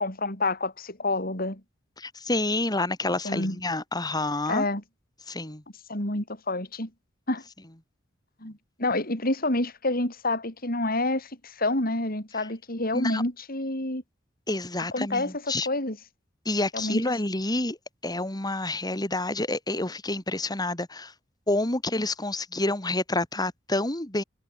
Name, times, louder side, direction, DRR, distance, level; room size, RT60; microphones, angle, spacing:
voice 1, 0.0-1.6 3.2-3.6 4.5-4.8 5.9-6.9 7.3-7.4 8.4-14.0 14.9-16.0 16.7-17.0, left 2 dB, 50° left, 6.9 m, -28 dB
voice 2, 2.0-4.7 5.3-5.6 12.9-13.2 14.5-15.7 16.5-17.8 18.0-21.1 21.5-24.2, left 2 dB, 20° left, 3.4 m, -28 dB
head